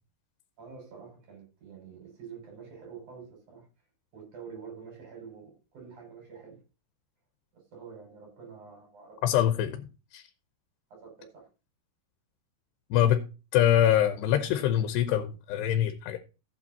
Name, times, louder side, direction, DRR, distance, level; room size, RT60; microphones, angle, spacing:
voice 1, 0.6-3.7 4.1-6.6 7.5-9.2 10.9-11.5, right 6 dB, 45° right, 7.5 m, -47 dB
voice 2, 9.2-9.8 10.1-10.2 12.9-13.2 13.5-16.2, left 11 dB, 90° left, 3.0 m, -24 dB
15.0 x 8.3 x 2.8 m
omnidirectional pair, 4.7 m